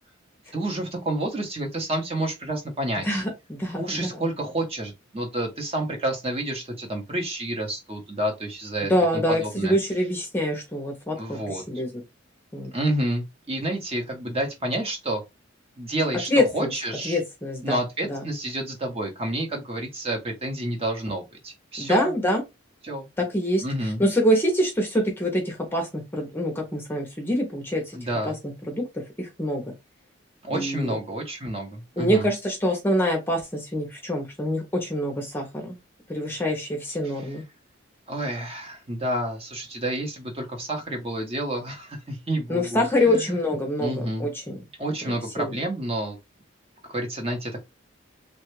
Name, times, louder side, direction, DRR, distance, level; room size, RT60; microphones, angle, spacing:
voice 1, 0.5-3.2 3.8-9.7 11.2-11.6 12.7-15.2 15.8-17.2 17.6-22.1 22.8-23.1 23.6-24.0 27.9-28.3 30.4-32.3 38.1-43.2 43.8-44.3 44.8-46.2 46.9-47.6, right 1 dB, 30° right, 0.9 m, -29 dB
voice 2, 3.0-4.2 8.8-11.9 12.5-12.7 16.3-16.7 17.0-17.8 18.1-18.2 21.8-22.4 23.2-28.0 28.2-29.7 30.5-31.0 32.0-35.7 36.1-37.4 42.5-44.6 45.1-45.5, equal, 10° left, 0.7 m, -25 dB
3.2 x 2.3 x 3.1 m
head